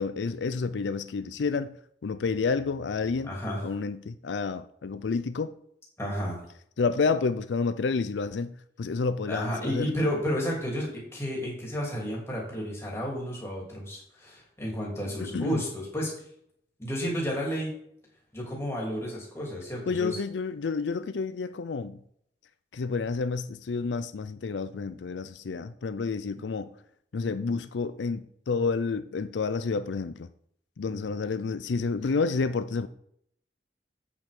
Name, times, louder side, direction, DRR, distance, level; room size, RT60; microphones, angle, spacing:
voice 1, 0.0-1.7 2.0-3.3 3.6-5.5 6.8-8.5 8.8-9.9 15.2-15.6 19.9-22.0 22.7-26.7 27.1-30.3 30.8-32.9, left 4 dB, 85° left, 0.5 m, -29 dB
voice 2, 3.2-3.7 6.0-6.4 9.3-16.1 16.8-17.8 18.3-20.2 30.9-31.2, equal, 15° left, 3.2 m, -32 dB
8.5 x 5.9 x 5.3 m
head